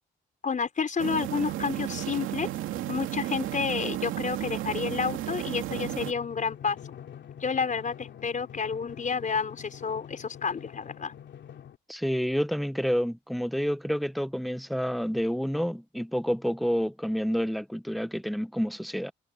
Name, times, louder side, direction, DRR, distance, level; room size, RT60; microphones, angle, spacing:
voice 1, 0.4-2.5 2.9-6.8 7.4-11.1, left 5 dB, 40° left, 5.2 m, -30 dB
sound 1, 1.0-6.1, right 14 dB, 90° right, 2.5 m, -33 dB
Drum, 5.7-11.8, left 9 dB, 65° left, 2.9 m, -45 dB
voice 2, 11.9-19.1, equal, ahead, 1.0 m, -29 dB
cardioid pair, 90°, 20 cm